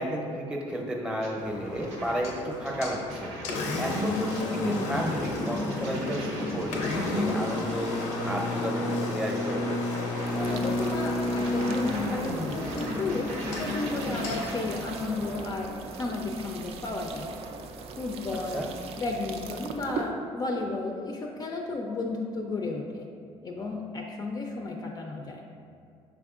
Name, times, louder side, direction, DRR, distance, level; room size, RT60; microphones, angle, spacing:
voice 1, 0.0-3.3 3.8-8.0 8.2-9.6 18.5-18.7, equal, 10° right, -1 dB, 0.7 m, -32 dB
sound 1, 1.2-1.3 1.7-14.8, right 2 dB, 90° right, 0.7 m, -43 dB
Engine, 1.4-15.4, left 2 dB, 90° left, 0.5 m, -31 dB
voice 2, 10.2-13.3 13.6-15.7 16.0-17.3 18.0-18.6 19.0-23.1 23.4-25.4, left 2 dB, 35° left, 1 dB, 0.3 m, -33 dB
sound 2, 10.2-20.1, right 4 dB, 60° right, 0.3 m, -41 dB
5.3 x 3.5 x 2.4 m, 2.4 s
cardioid pair, 90°, 12 cm